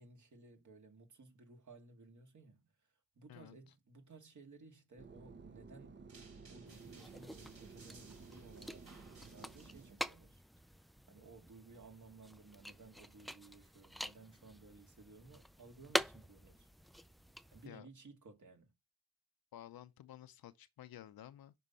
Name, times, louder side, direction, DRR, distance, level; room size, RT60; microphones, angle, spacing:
voice 1, 0.0-2.6 3.2-6.1 6.5-8.9 9.3-10.4 11.1-16.7 17.5-18.7, right 3 dB, 50° right, 2.1 m, -58 dB
voice 2, 3.3-3.7 17.6-17.9 19.5-21.5, left 12 dB, 70° left, 0.7 m, -53 dB
sound 1, 5.0-9.9, right 4 dB, 30° right, 0.8 m, -55 dB
sound 2, 6.1-10.1, right 4 dB, 80° right, 5.1 m, -62 dB
sound 3, 6.7-17.7, equal, ahead, 0.3 m, -46 dB
6.2 x 4.4 x 5.5 m
supercardioid pair, 55°, 37 cm